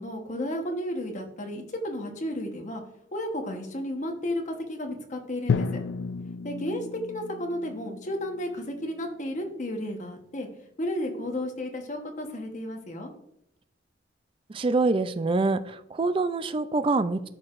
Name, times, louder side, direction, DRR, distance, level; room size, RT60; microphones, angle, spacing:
voice 1, 0.0-2.8 3.1-5.7 6.4-10.5 10.8-13.1, left 1 dB, 40° left, 3 dB, 1.1 m, -33 dB
Drum, 5.5-9.5, left 5 dB, 70° left, 0.3 m, -33 dB
voice 2, 14.5-17.3, right 3 dB, 30° right, 12 dB, 0.3 m, -25 dB
12.5 x 4.7 x 2.5 m, 0.81 s
head